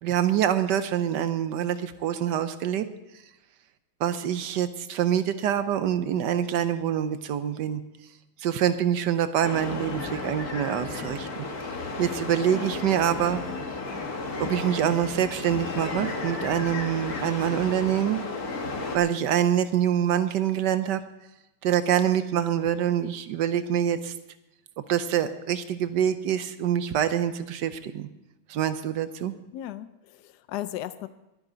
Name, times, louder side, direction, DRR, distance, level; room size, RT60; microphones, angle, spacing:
voice 1, 0.0-2.9 4.0-7.8 8.4-11.4 12.0-13.4 14.4-18.2 18.9-21.0 21.6-24.1 24.9-28.1 28.5-29.3, right 10 dB, 70° right, 11 dB, 1.1 m, -25 dB
sound 1, 9.4-19.0, left 3 dB, 45° left, 2.1 m, -33 dB
voice 2, 29.5-31.1, left 13 dB, 90° left, 13 dB, 0.9 m, -36 dB
21.5 x 10.0 x 3.9 m, 0.95 s
omnidirectional pair, 2.4 m